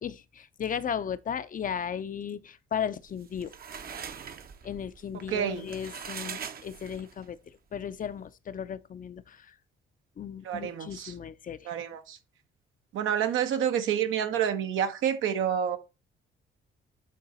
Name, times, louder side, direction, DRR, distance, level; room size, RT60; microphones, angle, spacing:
voice 1, 0.0-3.5 4.6-7.4 7.7-9.5 10.2-11.7, left 8 dB, 45° left, 0.6 m, -35 dB
shower curtains, 3.1-7.3, right 7 dB, 50° right, 0.8 m, -42 dB
voice 2, 5.3-5.7 10.4-11.1 11.6-12.2 12.9-15.8, right 9 dB, 85° right, 1.1 m, -28 dB
8.5 x 3.9 x 4.0 m
cardioid pair, 90°, 20 cm